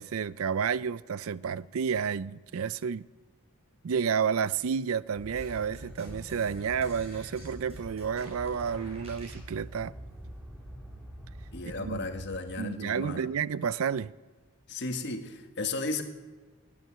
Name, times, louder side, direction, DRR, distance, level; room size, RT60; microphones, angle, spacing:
voice 1, 0.0-3.1 3.8-9.9 11.8-12.1 12.6-14.1, right 6 dB, 75° right, 0.4 m, -30 dB
sound 1, 5.2-12.2, right 1 dB, 5° right, 3.3 m, -45 dB
sound 2, 5.3-9.5, right 1 dB, 30° right, 5.1 m, -50 dB
voice 2, 11.5-13.3 14.7-16.0, left 3 dB, 50° left, 1.6 m, -34 dB
20.0 x 9.6 x 7.6 m
head